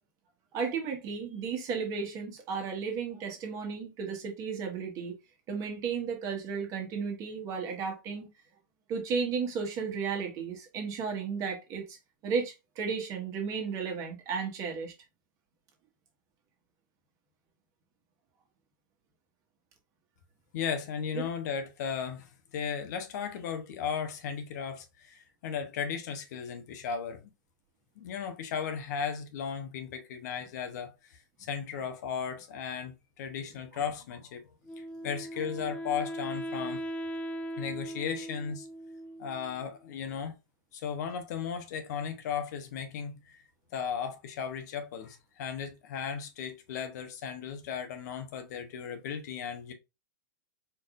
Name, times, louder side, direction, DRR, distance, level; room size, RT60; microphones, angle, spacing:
voice 1, 0.5-5.1 5.5-8.3 8.9-12.0 12.2-14.9 21.1-21.2, right 5 dB, 35° right, 1.4 m, -34 dB
voice 2, 20.5-27.3 28.0-34.4 34.8-36.8 37.6-38.7 39.2-40.3 40.7-43.4 43.7-49.7, left 7 dB, 55° left, 0.9 m, -36 dB
Wind instrument woodwind instrument, 34.7-39.7, equal, 10° left, 0.5 m, -39 dB
4.4 x 3.6 x 2.5 m
hypercardioid pair, 130°, 11 cm